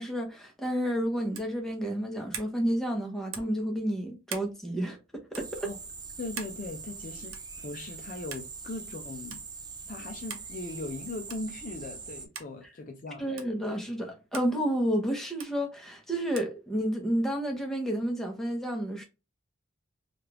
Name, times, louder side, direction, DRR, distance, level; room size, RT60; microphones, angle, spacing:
voice 1, 0.0-5.7 13.2-19.0, equal, ahead, 0.8 m, -30 dB
sound 1, 1.3-1.6 2.3-2.6 3.3-3.6 4.3-4.5 5.3-5.5 6.4-6.6 7.3-7.5 8.3-8.5 9.3-9.4 10.3-10.5 11.3-11.5 12.3-12.5 13.4-13.5 14.3-14.5 15.4-15.5 16.4-16.5, right 7 dB, 80° right, 0.7 m, -41 dB
sound 2, 5.3-12.3, right 4 dB, 20° right, 0.4 m, -43 dB
voice 2, 6.2-9.4 9.9-13.2, left 2 dB, 40° left, 0.4 m, -39 dB
3.2 x 2.4 x 2.9 m
head